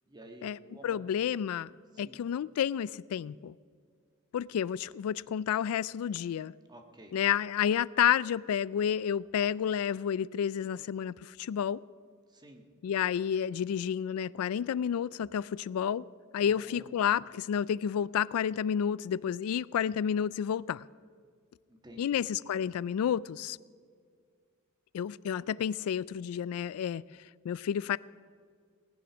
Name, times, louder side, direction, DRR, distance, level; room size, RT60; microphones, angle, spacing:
voice 1, 0.1-1.3 1.9-2.2 6.7-7.1 12.3-12.7 16.4-17.0 21.7-22.2, right 1 dB, 20° right, 1.5 m, -51 dB
voice 2, 0.8-1.7 2.0-3.5 4.3-6.5 7.1-11.8 12.8-16.0 16.3-20.8 22.0-23.6 24.9-27.0 27.4-28.0, left 8 dB, 85° left, 0.3 m, -30 dB
18.5 x 10.5 x 6.1 m
head